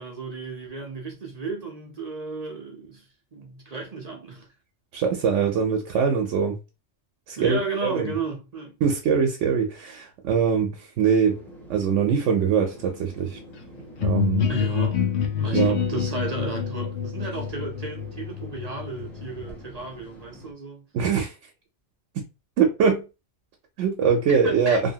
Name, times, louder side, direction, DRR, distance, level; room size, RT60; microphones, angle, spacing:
voice 1, 0.0-4.5 7.4-8.8 14.5-15.0 15.4-20.9 24.3-24.8, right 4 dB, 45° right, 0.5 m, -33 dB
voice 2, 4.9-6.6 7.3-8.1 8.8-11.4 11.7-13.4 14.0-14.5 15.5-15.8 20.9-21.3 22.6-23.0 23.8-24.8, right 6 dB, 90° right, 0.9 m, -22 dB
sound 1, 11.0-20.5, equal, ahead, 0.6 m, -45 dB
sound 2, 14.0-19.6, left 8 dB, 75° left, 0.9 m, -27 dB
2.7 x 2.5 x 2.7 m
omnidirectional pair, 1.2 m